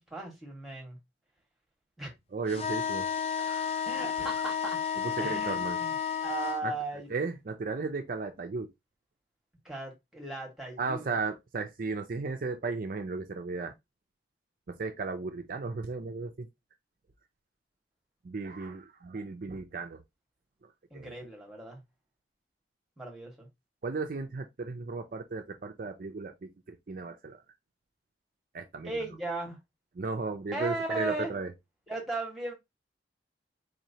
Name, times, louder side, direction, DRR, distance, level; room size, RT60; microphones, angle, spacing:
voice 1, 0.1-1.0 2.0-2.1 3.9-4.8 5.2-5.9 6.2-7.1 9.6-11.1 20.9-21.8 23.0-23.5 28.8-29.6 30.5-31.4 31.9-32.5, right 2 dB, ahead, 1.5 m, -36 dB
voice 2, 2.3-3.1 3.4-3.9 4.2-4.3 5.0-5.8 6.6-6.7 7.1-8.7 10.8-13.7 14.7-16.5 18.2-20.0 20.6-21.1 23.8-27.4 28.5-29.1 29.9-31.5, right 4 dB, 50° right, 0.5 m, -35 dB
sound 1, 2.5-6.6, left 8 dB, 35° left, 0.5 m, -32 dB
4.3 x 3.0 x 2.7 m
head